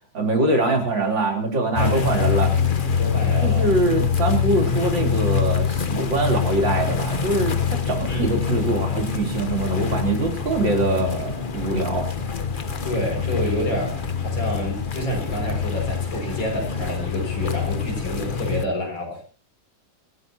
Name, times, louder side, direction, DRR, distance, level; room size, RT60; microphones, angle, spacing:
voice 1, 0.1-2.5 3.4-12.1, right 2 dB, 65° right, 2 dB, 4.4 m, -23 dB
sound 1, 1.7-18.6, left 7 dB, 35° left, 0.9 m, -25 dB
voice 2, 1.8-2.6 3.0-3.7 8.1-8.4 12.8-19.3, equal, 70° left, 1 dB, 7.0 m, -28 dB
25.5 x 15.5 x 2.9 m, 0.35 s
omnidirectional pair, 2.2 m